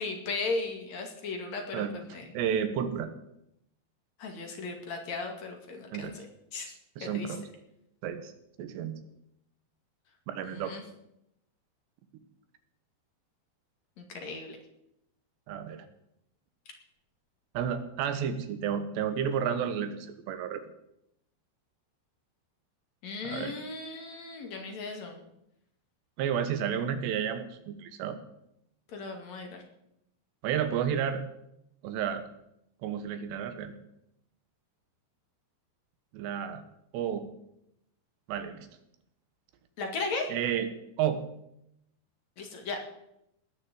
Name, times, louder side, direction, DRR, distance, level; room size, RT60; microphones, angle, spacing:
voice 1, 0.0-1.8 2.1-2.3 4.2-6.3 6.5-6.7 7.0-7.3 10.4-10.8 14.0-14.6 23.0-25.2 28.9-29.6 39.8-40.3 42.4-42.8, left 3 dB, 50° left, 3 dB, 3.0 m, -36 dB
voice 2, 2.3-3.1 5.9-6.1 7.0-7.4 8.0-8.3 8.6-9.0 10.3-10.7 15.5-15.9 17.6-20.6 23.2-23.5 26.2-28.2 30.4-31.2 31.8-32.3 32.8-33.8 36.1-36.6 36.9-37.3 38.3-38.7 40.3-40.7 41.0-41.2, right 8 dB, 85° right, 9 dB, 3.4 m, -31 dB
19.5 x 6.5 x 7.8 m, 0.80 s
omnidirectional pair, 4.8 m